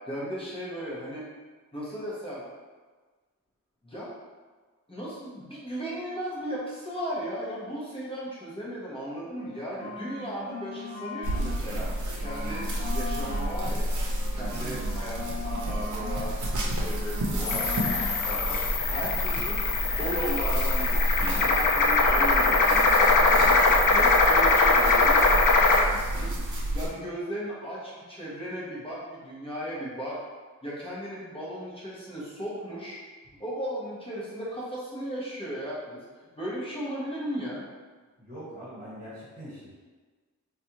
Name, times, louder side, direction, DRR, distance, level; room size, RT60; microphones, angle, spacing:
voice 1, 0.1-1.2 1.7-2.4 3.8-4.1 4.9-11.9 12.2-13.9 14.3-15.2 15.4-16.4 16.7-19.6 20.0-30.2 30.6-33.0 33.4-36.0 36.4-37.6, equal, 15° left, -7 dB, 0.8 m, -36 dB
sound 1, 9.4-11.6 11.9-16.3 16.6-18.6, left 3 dB, 40° left, 1.1 m, -40 dB
sound 2, 11.2-26.9, right 1 dB, 70° right, 0.7 m, -30 dB
voice 2, 14.5-14.9 38.2-39.7, equal, 25° right, -13 dB, 1.2 m, -42 dB
sound 3, 17.4-25.8, left 3 dB, 80° left, 0.5 m, -22 dB
4.2 x 2.3 x 2.8 m, 1.4 s
wide cardioid pair, 125°, 31 cm